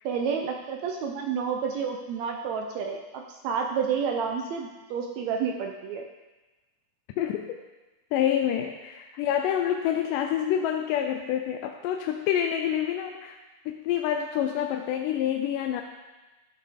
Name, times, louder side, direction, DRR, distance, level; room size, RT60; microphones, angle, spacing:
voice 1, 0.0-6.0, right 6 dB, 80° right, 3 dB, 1.6 m, -30 dB
voice 2, 7.2-7.6 8.1-13.4 13.7-15.8, left 10 dB, 85° left, 3 dB, 2.2 m, -27 dB
12.0 x 5.8 x 3.5 m, 1.1 s
omnidirectional pair, 3.7 m